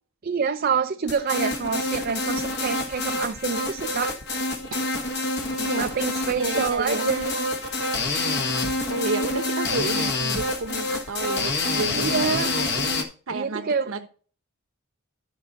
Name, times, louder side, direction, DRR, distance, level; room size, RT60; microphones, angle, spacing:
voice 1, 0.2-4.2 5.8-7.3 11.9-12.5 13.3-13.9, right 6 dB, 45° right, 0.5 m, -27 dB
sound 1, 1.1-13.0, left 2 dB, 50° left, 1.4 m, -27 dB
voice 2, 5.6-5.9 6.3-7.1 8.3-12.8 13.3-14.1, right 2 dB, 70° right, 1.0 m, -31 dB
11.0 x 5.5 x 4.0 m
head